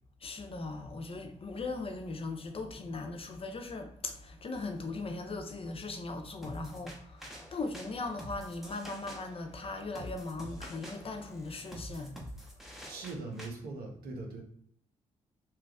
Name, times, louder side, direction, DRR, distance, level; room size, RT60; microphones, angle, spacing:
voice 1, 0.2-12.2 12.7-12.9, left 3 dB, 35° left, 0.6 m, -39 dB
sound 1, 6.4-13.5, equal, ahead, 0.9 m, -47 dB
voice 2, 12.7-14.4, right 3 dB, 70° right, 0.8 m, -41 dB
3.1 x 2.3 x 3.5 m
hypercardioid pair, 40°, 17 cm